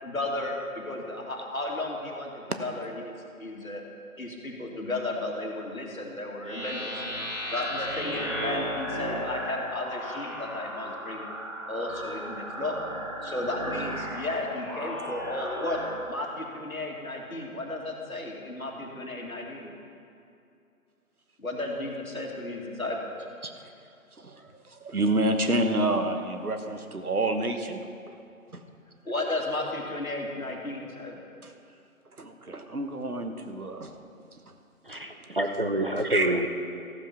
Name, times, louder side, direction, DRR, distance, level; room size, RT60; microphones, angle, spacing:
voice 1, 0.0-3.1 3.4-3.8 4.2-7.0 7.5-11.3 11.7-12.8 13.2-15.8 16.1-19.7 21.4-23.1 29.0-31.2, left 2 dB, 70° left, 0 dB, 2.4 m, -33 dB
sound 1, 6.4-15.9, equal, 20° right, 1.7 m, -35 dB
voice 2, 24.2-27.8 28.1-28.2 28.5-28.6 31.4-31.5 32.2-34.0 34.9-35.0 36.1-36.3, right 1 dB, 85° right, 6 dB, 1.3 m, -28 dB
voice 3, 34.8-36.5, right 1 dB, 40° right, 5 dB, 0.7 m, -27 dB
14.5 x 7.5 x 5.7 m, 2.6 s
figure-of-eight pair, 165°, 43 cm